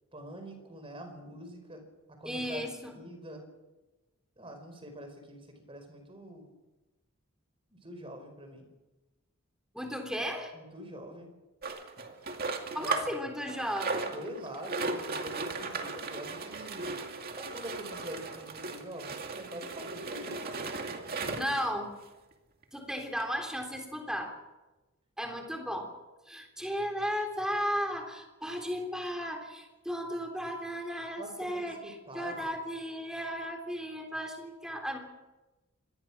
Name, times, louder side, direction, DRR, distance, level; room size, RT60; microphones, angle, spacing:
voice 1, 0.1-1.8 2.1-3.4 4.4-5.4 5.7-6.5 7.7-8.6 10.5-11.3 12.8-13.2 14.1-17.0 17.4-20.8 21.1-21.6 31.2-32.6, equal, 25° right, 6 dB, 4.9 m, -45 dB
voice 2, 2.2-2.9 9.7-10.5 12.7-14.2 21.3-21.9 22.7-24.3 25.2-25.9 26.3-31.8 32.1-35.0, equal, 5° right, 2 dB, 3.6 m, -35 dB
sound 1, 11.6-13.2 13.5-21.6 22.3-22.4 22.6-22.7 23.2-23.3, right 3 dB, 45° right, 2.3 m, -37 dB
26.0 x 20.5 x 6.2 m, 1.1 s
head